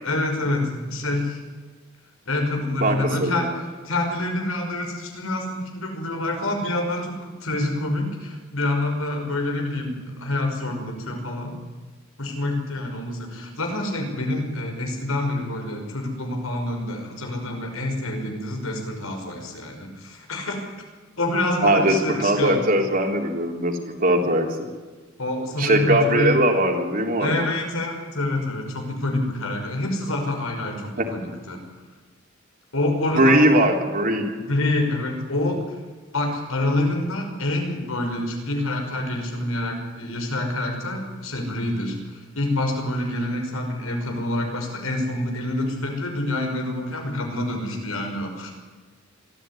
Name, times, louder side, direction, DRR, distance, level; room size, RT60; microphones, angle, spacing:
voice 1, 0.0-1.4 2.3-3.5 3.8-11.6 12.2-20.6 21.2-22.6 25.2-26.4 27.2-31.6 32.7-33.6 34.4-35.8 36.1-48.5, left 1 dB, 90° left, 3 dB, 5.7 m, -27 dB
voice 2, 2.8-3.5 21.6-24.7 25.6-27.4 31.0-31.1 33.1-34.3, right 1 dB, 45° right, 2 dB, 3.5 m, -20 dB
23.5 x 14.5 x 9.8 m, 1.4 s
head